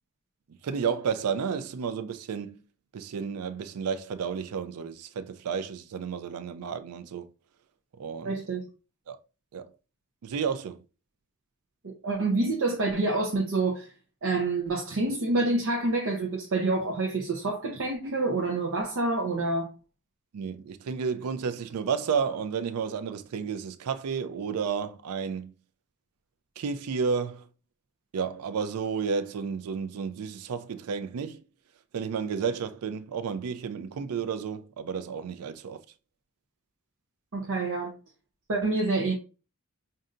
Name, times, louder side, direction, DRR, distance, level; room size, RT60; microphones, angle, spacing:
voice 1, 0.6-2.6 2.9-7.3 8.0-8.4 9.1-9.2 9.5-9.7 10.2-10.8 20.3-25.5 26.6-27.5 28.1-31.4 31.9-35.8, right 6 dB, 85° right, 0.4 m, -32 dB
voice 2, 8.2-8.6 11.8-13.9 14.2-19.7 37.3-37.9 38.5-39.1, right 2 dB, 65° right, 0.8 m, -27 dB
5.3 x 2.6 x 2.5 m
head